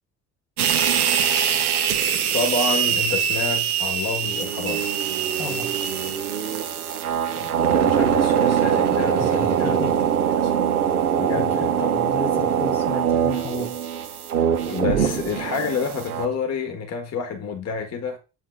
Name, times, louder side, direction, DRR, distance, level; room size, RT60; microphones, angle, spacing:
sound 1, 0.6-16.3, right 8 dB, 85° right, 0.7 m, -22 dB
voice 1, 2.3-4.9 7.3-9.9 10.4-10.8 11.1-11.8 14.7-18.2, left 5 dB, 35° left, 1.4 m, -29 dB
voice 2, 5.4-5.7 9.2-10.1 11.6-13.7, left 3 dB, 80° left, 2.3 m, -33 dB
7.6 x 5.8 x 2.3 m
figure-of-eight pair, 50°, 43 cm